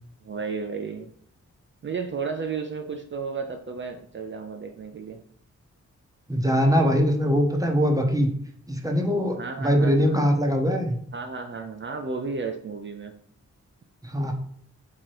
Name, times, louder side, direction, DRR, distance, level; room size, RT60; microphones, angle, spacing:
voice 1, 0.2-1.1 1.8-5.2 9.4-10.2 11.1-13.2, right 5 dB, 40° right, 4 dB, 0.4 m, -33 dB
voice 2, 6.3-8.3 8.7-11.0 14.0-14.3, equal, 10° right, 2 dB, 0.9 m, -22 dB
3.7 x 3.0 x 4.6 m, 0.63 s
cardioid pair, 75°, 30 cm